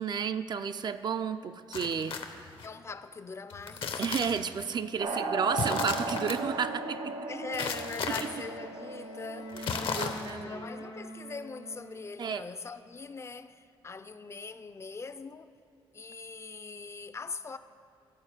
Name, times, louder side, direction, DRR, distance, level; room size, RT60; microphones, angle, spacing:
voice 1, 0.0-2.3 4.0-7.2 9.6-9.7 9.9-10.7 12.2-12.4, right 6 dB, 50° right, 0.3 m, -32 dB
sound 1, 1.7-2.7 3.5-4.6 5.5-6.4 7.5-8.2 9.5-10.4, left 5 dB, 65° left, 0.8 m, -35 dB
voice 2, 2.6-4.0 5.0-5.3 7.3-15.5 15.9-17.6, left 4 dB, 30° left, 0.4 m, -42 dB
sound 2, 5.0-10.2, right 3 dB, 70° right, 0.8 m, -36 dB
Wind instrument woodwind instrument, 7.9-12.1, equal, 85° left, 1.1 m, -44 dB
11.0 x 4.4 x 7.1 m
cardioid pair, 70°, 10 cm